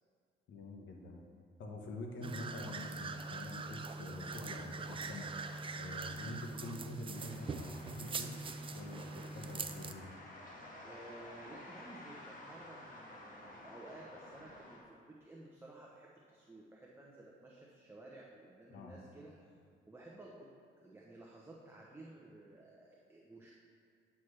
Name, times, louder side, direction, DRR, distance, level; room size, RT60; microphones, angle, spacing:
voice 1, 0.5-1.2 1.6-5.5 5.7-8.4 8.7-10.1 18.7-18.9, left 2 dB, 75° left, 1 dB, 1.1 m, -46 dB
sound 1, 2.2-9.9, right 3 dB, 25° right, 0.4 m, -43 dB
sound 2, 7.1-14.8, left 1 dB, 45° left, 1.6 m, -53 dB
voice 2, 10.8-19.5 19.9-20.5 20.8-23.5, right 2 dB, 10° right, -3 dB, 0.8 m, -54 dB
9.4 x 5.9 x 3.3 m, 2.1 s
cardioid pair, 90°, 20 cm